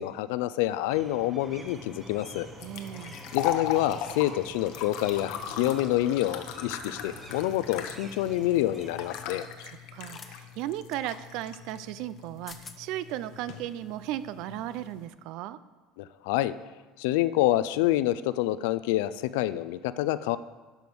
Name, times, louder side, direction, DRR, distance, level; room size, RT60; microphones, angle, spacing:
voice 1, 0.0-2.5 3.3-9.5 16.0-16.5 17.0-20.4, left 14 dB, 85° left, 15 dB, 0.4 m, -27 dB
sound 1, 0.9-9.3, right 2 dB, 15° right, 0.9 m, -48 dB
sound 2, 1.7-15.1, left 9 dB, 70° left, 0.9 m, -39 dB
voice 2, 2.6-3.2 9.6-15.6, right 13 dB, 65° right, 15 dB, 0.5 m, -36 dB
sound 3, 8.1-8.3 10.0-10.3 10.9-11.0 12.2-12.3 12.5-12.8, left 4 dB, 20° left, 0.7 m, -47 dB
12.0 x 5.3 x 6.1 m, 1.3 s
cardioid pair, 145°, 0 cm